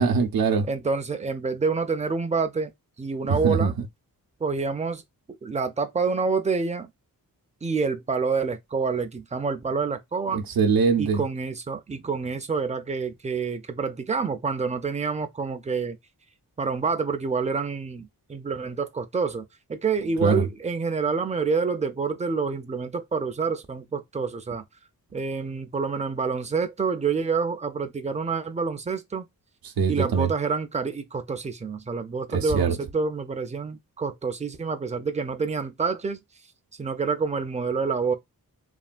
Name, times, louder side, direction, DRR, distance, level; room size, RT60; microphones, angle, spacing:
voice 1, 0.0-0.7 3.3-3.7 10.3-11.2 20.2-20.5 29.8-30.3 32.3-32.7, right 5 dB, 80° right, 0.6 m, -22 dB
voice 2, 0.7-2.7 3.0-3.7 4.4-5.0 5.3-6.9 7.6-10.4 11.0-16.0 16.6-19.4 19.7-24.6 25.1-29.3 29.9-36.2 36.8-38.1, right 5 dB, 20° right, 0.4 m, -27 dB
3.3 x 2.2 x 2.4 m
wide cardioid pair, 115°, 35 cm